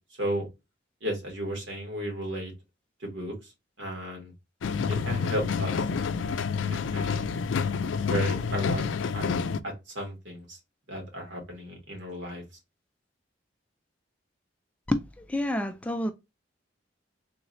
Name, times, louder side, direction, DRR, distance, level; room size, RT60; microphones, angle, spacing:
voice 1, 1.0-2.5 3.0-3.3 3.8-4.3 4.9-5.8 6.9-7.4 8.1-8.8 9.1-9.3 9.6-10.6 10.9-12.4, right 1 dB, 75° right, 2.0 m, -34 dB
sound 1, 4.6-9.6, left 5 dB, 80° left, 0.4 m, -28 dB
voice 2, 14.9-16.1, left 1 dB, 5° left, 0.3 m, -29 dB
3.6 x 3.1 x 2.7 m
head